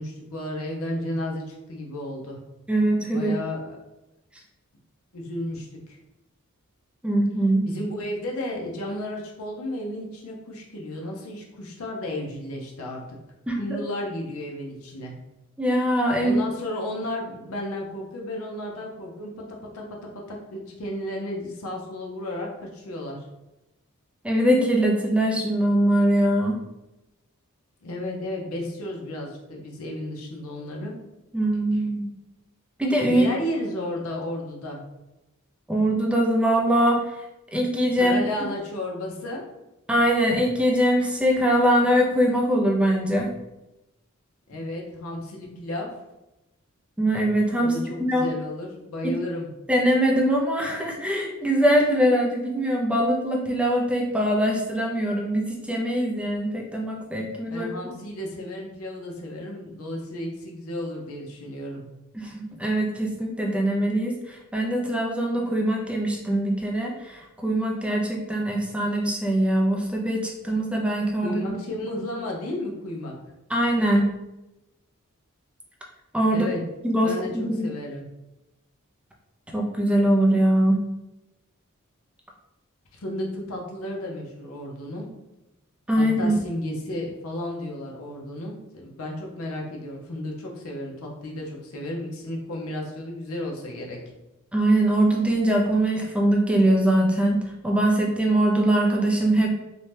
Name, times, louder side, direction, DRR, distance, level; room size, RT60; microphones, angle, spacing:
voice 1, 0.0-2.4 3.1-3.8 5.1-6.0 7.6-13.0 13.6-15.1 16.2-23.2 27.8-30.9 31.7-31.8 33.1-34.8 38.0-39.4 44.5-45.9 47.6-49.5 57.5-61.8 71.2-73.1 76.3-76.6 77.0-78.1 82.9-85.1 86.0-94.0, left 1 dB, 75° left, -1 dB, 0.6 m, -33 dB
voice 2, 2.7-3.3 7.0-7.7 13.5-13.8 15.6-16.4 24.2-26.6 31.3-32.1 32.8-33.3 35.7-37.0 37.5-38.2 39.9-43.3 47.0-48.3 49.7-57.7 62.1-71.6 73.5-74.1 76.1-76.5 76.8-77.7 79.5-80.8 85.9-86.3 94.5-99.5, right 1 dB, 5° right, -1 dB, 0.4 m, -22 dB
2.7 x 2.2 x 3.2 m, 0.95 s
head